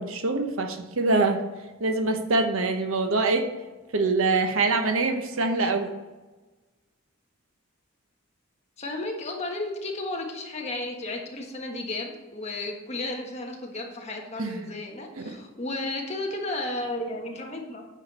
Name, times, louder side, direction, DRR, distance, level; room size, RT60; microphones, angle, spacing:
voice 1, 0.0-1.5 1.8-3.5 3.9-5.9 14.4-14.7 15.2-15.3, right 3 dB, 75° right, 6 dB, 0.9 m, -24 dB
voice 2, 8.8-17.9, left 2 dB, 30° left, 1 dB, 1.4 m, -33 dB
9.2 x 6.4 x 4.2 m, 1.2 s
head